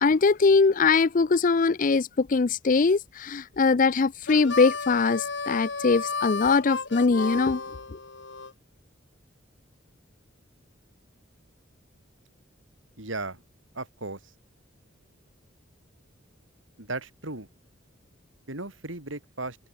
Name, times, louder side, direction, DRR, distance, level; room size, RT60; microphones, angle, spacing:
voice 1, 0.0-7.6, left 4 dB, 40° left, 0.5 m, -22 dB
Harmonica, 4.3-8.5, left 4 dB, 65° left, 1.9 m, -33 dB
voice 2, 13.0-13.4 13.7-14.3 16.8-17.5 18.5-19.6, right 2 dB, 75° right, 4.2 m, -36 dB
head